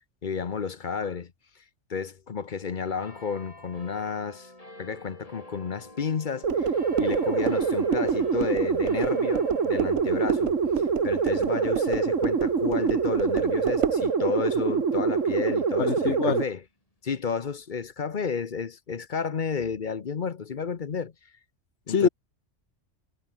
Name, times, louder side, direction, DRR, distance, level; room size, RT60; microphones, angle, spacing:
voice 1, 0.2-1.3 1.9-4.5 4.8-6.7 7.0-10.5 11.0-16.6 17.0-21.1 21.9-22.1, left 6 dB, 45° left, 0.9 m, -32 dB
sound 1, 3.0-15.9 16.5-16.6, left 1 dB, 30° left, 5.1 m, -49 dB
sound 2, 6.4-16.4, right 5 dB, 90° right, 2.1 m, -25 dB
sound 3, 6.5-14.1, right 12 dB, 70° right, 0.9 m, -33 dB
voice 2, 15.8-16.4 21.9-22.1, left 6 dB, 65° left, 1.6 m, -24 dB
omnidirectional pair, 1.3 m